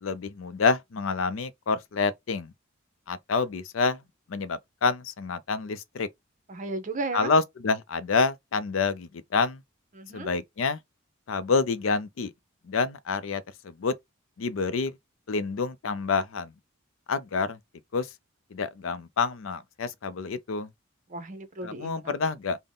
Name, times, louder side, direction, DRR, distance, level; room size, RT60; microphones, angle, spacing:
voice 1, 0.0-2.5 3.1-4.0 4.3-6.1 7.1-9.6 10.1-10.8 11.3-12.3 12.7-13.9 14.4-14.9 15.3-16.5 17.1-17.6 17.9-18.1 18.5-20.7 21.6-22.6, left 4 dB, 75° left, 0.5 m, -28 dB
voice 2, 6.5-7.3 9.9-10.3 21.1-22.1, right 2 dB, 40° right, 0.7 m, -34 dB
3.6 x 2.1 x 3.8 m
head